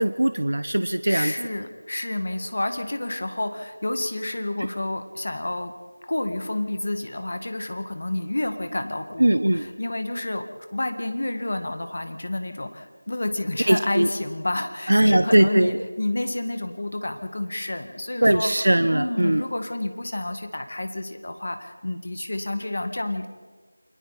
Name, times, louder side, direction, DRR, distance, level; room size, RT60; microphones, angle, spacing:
voice 1, 0.0-1.3 9.2-9.7 13.7-14.1 14.9-15.8 18.2-19.4, right 1 dB, 70° right, 11 dB, 0.9 m, -20 dB
voice 2, 1.0-5.7 6.0-18.5 18.9-23.3, left 1 dB, 45° left, 7 dB, 1.9 m, -29 dB
29.0 x 24.0 x 4.2 m, 1.4 s
figure-of-eight pair, 180°, 0 cm